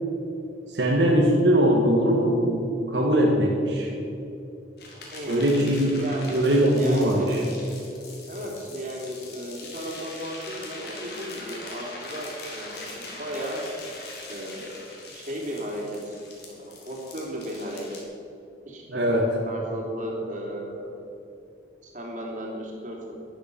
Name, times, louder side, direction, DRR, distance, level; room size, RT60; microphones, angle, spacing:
voice 1, 0.7-3.9 5.3-6.0 6.3-7.4 18.9-19.3, equal, 80° right, -2 dB, 1.9 m, -21 dB
sound 1, 4.8-18.0, left 2 dB, 60° left, 3.4 m, -42 dB
voice 2, 5.1-5.5 6.0-6.2 6.8-7.5 8.3-13.6 14.3-14.8 15.1-16.2 16.4-18.0 18.6-19.2 19.5-20.8 21.8-23.1, equal, 45° right, -2 dB, 3.3 m, -35 dB
12.0 x 12.0 x 7.1 m, 2.8 s
head